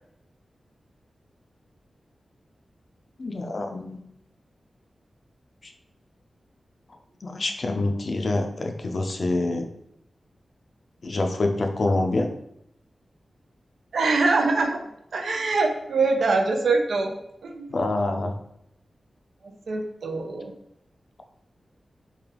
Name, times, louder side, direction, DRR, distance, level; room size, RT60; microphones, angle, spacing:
voice 1, 3.2-4.0 7.2-9.7 11.0-12.3 17.7-18.3, left 2 dB, 45° left, 4 dB, 0.5 m, -26 dB
voice 2, 13.9-14.8 15.1-17.1 17.4-17.8 19.4-20.5, right 3 dB, 80° right, 4 dB, 0.6 m, -24 dB
3.3 x 2.8 x 3.6 m, 0.77 s
wide cardioid pair, 155°, 0 cm